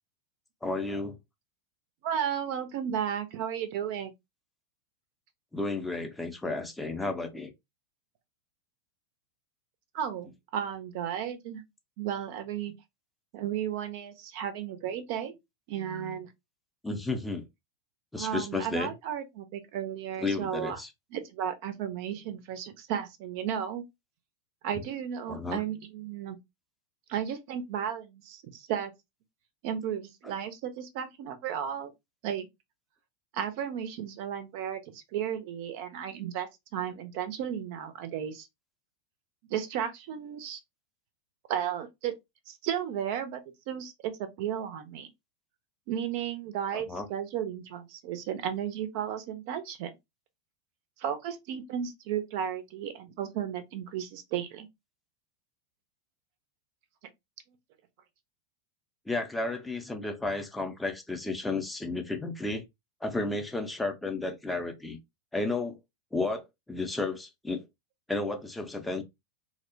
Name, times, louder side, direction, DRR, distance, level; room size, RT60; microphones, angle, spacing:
voice 1, 0.6-1.2 5.5-7.5 16.8-17.4 18.1-18.9 20.2-20.9 25.3-25.6 46.7-47.1 59.1-62.6 63.0-65.0 65.3-65.8 66.1-67.6 68.1-69.0, left 2 dB, 5° left, 0.5 m, -32 dB
voice 2, 2.0-4.1 9.9-11.6 12.0-12.7 13.3-15.4 15.7-16.3 18.2-20.8 21.1-23.8 24.6-26.4 27.1-28.9 29.6-31.9 32.2-32.5 33.3-38.5 39.5-40.6 41.5-42.1 42.5-43.4 43.7-45.1 45.9-49.9 51.0-54.7, right 9 dB, 45° right, 0.4 m, -34 dB
2.8 x 2.0 x 2.6 m
figure-of-eight pair, 90°, 0 cm